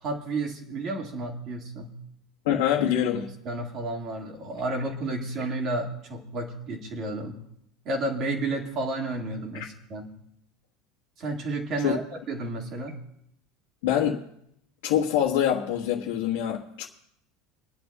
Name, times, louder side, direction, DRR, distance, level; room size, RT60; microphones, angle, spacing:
voice 1, 0.0-2.0 3.1-7.4 7.9-10.1 11.2-13.0, right 2 dB, 35° right, 2.0 m, -31 dB
voice 2, 2.4-3.3 9.6-9.7 11.8-12.0 13.8-14.2 14.8-16.9, left 10 dB, 85° left, 1.4 m, -25 dB
27.5 x 10.5 x 2.4 m
cardioid pair, 170°, 0 cm